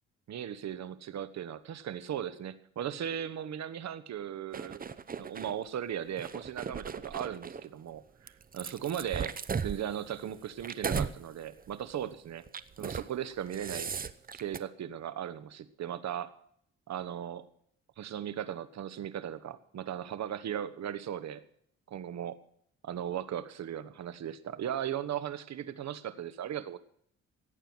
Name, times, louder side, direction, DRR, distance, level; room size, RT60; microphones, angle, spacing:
voice 1, 0.3-4.8 5.2-9.4 9.6-12.4 12.8-13.9 14.3-16.3 16.9-17.4 18.0-21.4 21.9-22.4 22.8-26.8, right 10 dB, 65° right, 12 dB, 1.3 m, -37 dB
sound 1, 4.5-5.5 6.1-7.6 8.3-11.2 11.6-11.8 12.5-13.1 13.4-14.6, right 6 dB, 30° right, 0.8 m, -37 dB
17.0 x 9.0 x 6.2 m, 0.67 s
cardioid pair, 90°, 30 cm